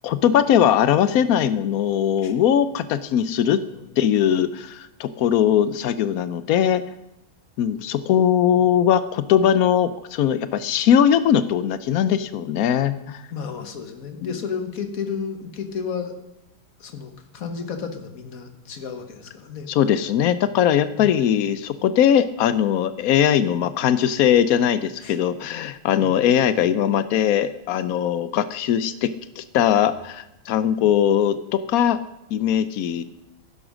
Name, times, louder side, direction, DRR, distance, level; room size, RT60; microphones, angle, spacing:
voice 1, 0.0-3.6 4.0-6.8 7.6-13.2 14.2-14.3 19.7-29.1 29.4-32.0 32.3-33.0, left 9 dB, 80° left, 14 dB, 0.7 m, -20 dB
voice 2, 13.3-16.1 16.8-19.7 20.9-21.4 25.0-25.2 26.0-26.5, left 6 dB, 45° left, 7 dB, 1.6 m, -33 dB
14.0 x 11.0 x 6.3 m, 0.88 s
omnidirectional pair, 2.2 m